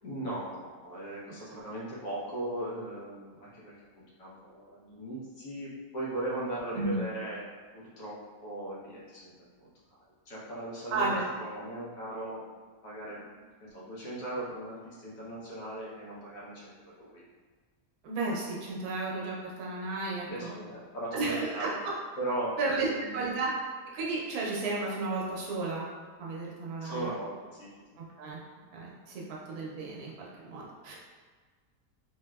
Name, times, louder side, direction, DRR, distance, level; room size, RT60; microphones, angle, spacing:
voice 1, 0.0-7.4 7.7-9.3 9.6-9.7 10.3-11.1 11.4-12.4 12.8-13.2 13.6-17.2 20.3-21.7 22.2-23.4 26.8-27.7, right 1 dB, 70° left, -7 dB, 1.3 m, -38 dB
voice 2, 10.9-11.2 18.0-20.6 21.1-22.0 22.6-23.5 23.9-25.9 26.2-27.1 28.0-28.4 28.7-30.9, right 3 dB, 80° right, -4 dB, 1.1 m, -33 dB
3.2 x 2.7 x 2.2 m, 1.5 s
omnidirectional pair, 1.6 m